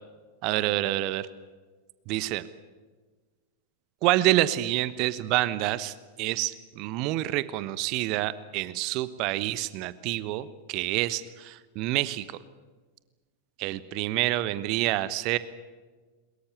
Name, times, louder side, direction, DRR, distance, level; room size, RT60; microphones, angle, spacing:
voice 1, 0.4-1.3 2.1-2.4 4.0-12.4 13.6-15.4, right 16 dB, 40° right, 16 dB, 1.0 m, -27 dB
23.0 x 22.0 x 8.2 m, 1.4 s
figure-of-eight pair, 90°, 0 cm